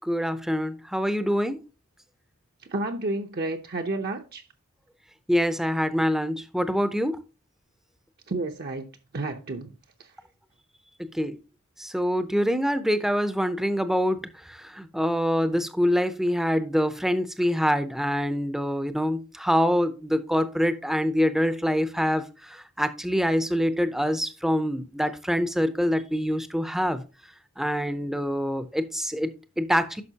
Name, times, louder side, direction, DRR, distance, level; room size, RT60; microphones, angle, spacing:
voice 1, 0.0-1.6 5.3-7.2 11.0-11.4 11.8-14.2 14.5-27.0 27.6-30.0, equal, ahead, 0.6 m, -25 dB
voice 2, 2.7-4.4 8.3-8.9 9.1-9.7, right 2 dB, 45° right, 0.7 m, -30 dB
11.0 x 5.8 x 2.8 m
head